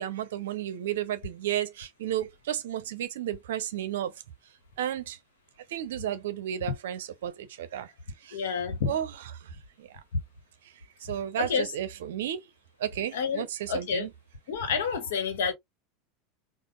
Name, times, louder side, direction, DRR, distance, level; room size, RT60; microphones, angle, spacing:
voice 1, 0.0-4.1 4.8-5.2 5.7-7.9 8.2-8.4 8.9-9.5 9.8-10.0 11.0-12.5 12.8-14.1, right 11 dB, 65° right, 0.5 m, -33 dB
voice 2, 8.3-8.9 11.4-11.7 13.1-13.4 13.7-14.1 14.5-15.5, left 6 dB, 65° left, 1.0 m, -29 dB
5.0 x 2.0 x 2.3 m
figure-of-eight pair, 80°, 0 cm